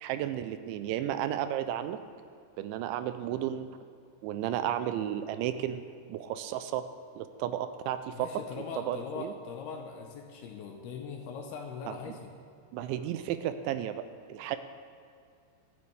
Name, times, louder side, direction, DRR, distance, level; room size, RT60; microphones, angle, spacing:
voice 1, 0.0-2.0 2.6-3.7 4.2-5.8 6.1-6.9 7.2-8.3 8.8-9.3 11.9-12.2 12.7-14.0 14.3-14.6, right 11 dB, 90° right, 10 dB, 3.0 m, -33 dB
voice 2, 8.1-12.3, left 5 dB, 75° left, 2 dB, 2.6 m, -41 dB
25.0 x 9.6 x 3.4 m, 2.3 s
omnidirectional pair, 5.3 m